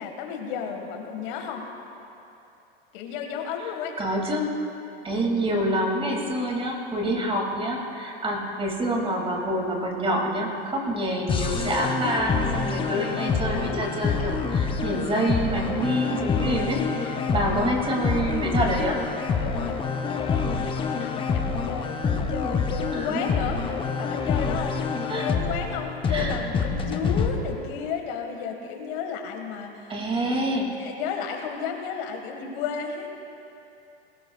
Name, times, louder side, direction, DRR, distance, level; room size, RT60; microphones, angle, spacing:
voice 1, 0.0-1.7 2.9-4.0 17.3-17.7 19.4-19.8 20.1-24.8 25.1-33.1, left 6 dB, 55° left, 4 dB, 1.7 m, -33 dB
voice 2, 4.0-4.5 5.0-19.0 22.9-23.3 25.1-25.3 26.1-26.4 29.9-30.7, right 1 dB, 15° right, 0 dB, 2.4 m, -27 dB
sound 1, 11.3-27.3, left 5 dB, 15° left, 0.9 m, -27 dB
20.5 x 17.5 x 2.4 m, 2.8 s
hypercardioid pair, 120°, 32 cm